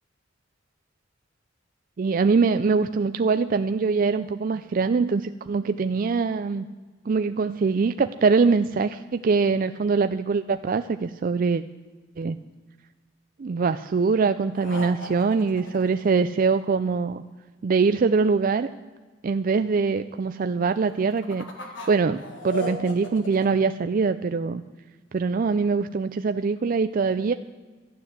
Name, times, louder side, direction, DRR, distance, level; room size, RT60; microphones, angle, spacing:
voice 1, 2.0-6.7 7.1-11.6 12.2-12.4 13.4-17.2 17.6-18.7 19.2-21.4 21.9-24.6 25.1-27.3, right 4 dB, 45° right, 10 dB, 0.4 m, -23 dB
sound 1, 14.5-16.8 20.9-23.5, left 1 dB, 75° left, 2.1 m, -37 dB
12.5 x 9.5 x 8.0 m, 1.3 s
head